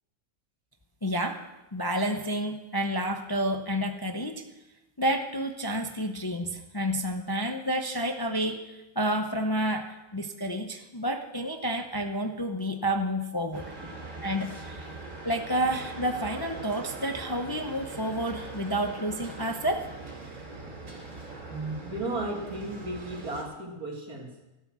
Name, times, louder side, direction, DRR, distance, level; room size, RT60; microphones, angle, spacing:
voice 1, 1.0-1.5 1.7-4.4 5.0-13.7 14.2-14.9 15.2-19.9, equal, 25° left, 5 dB, 0.5 m, -30 dB
sound 1, 13.5-23.4, right 3 dB, 55° right, 3.6 m, -41 dB
voice 2, 21.5-24.3, right 2 dB, 85° right, 0 dB, 2.9 m, -34 dB
13.0 x 12.0 x 6.2 m, 1.0 s
omnidirectional pair, 1.5 m